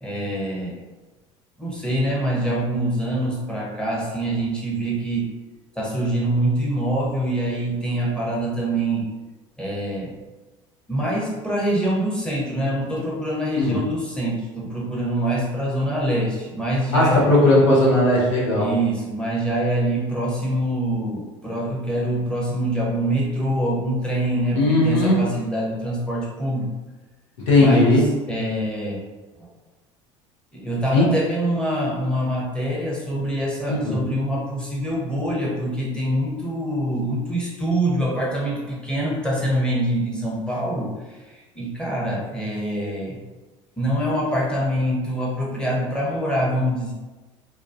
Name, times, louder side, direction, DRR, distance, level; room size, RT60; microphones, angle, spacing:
voice 1, 0.0-0.8 1.6-5.3 5.8-9.1 9.6-10.1 10.9-17.3 18.5-26.7 27.6-28.0 28.3-29.1 29.4-29.5 30.5-43.2 43.8-46.9, right 1 dB, 5° left, -4 dB, 0.8 m, -25 dB
voice 2, 16.9-18.7 24.5-25.2 27.5-28.0 30.9-31.0 33.7-34.0, left 2 dB, 80° left, -5 dB, 0.9 m, -17 dB
2.2 x 2.1 x 2.7 m, 1.2 s
hypercardioid pair, 70°, 16 cm